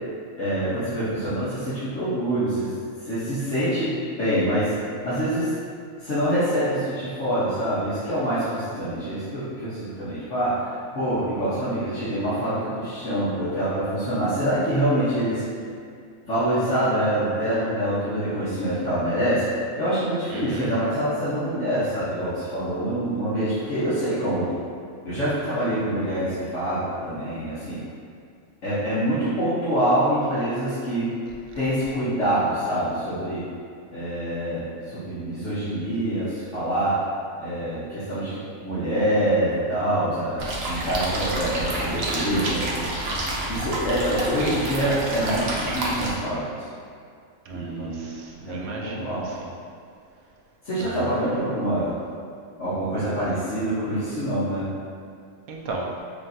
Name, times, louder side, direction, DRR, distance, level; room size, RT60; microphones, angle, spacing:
voice 1, 0.4-2.7 3.0-4.7 5.0-5.5 6.0-15.4 16.2-19.5 19.8-24.6 25.0-27.8 28.6-31.2 31.5-33.5 33.9-37.0 37.4-42.9 43.5-46.7 47.5-48.1 48.5-49.3 50.6-51.9 52.6-54.7, right 1 dB, 60° left, -13 dB, 1.2 m, -25 dB
voice 2, 20.3-20.7 43.0-43.5 47.5-49.5 50.8-51.0 55.5-56.0, right 2 dB, 80° right, -1 dB, 1.1 m, -36 dB
sound 1, 40.4-46.1, right 1 dB, 55° right, 0.8 m, -28 dB
5.1 x 2.6 x 2.6 m, 2.4 s
omnidirectional pair, 1.5 m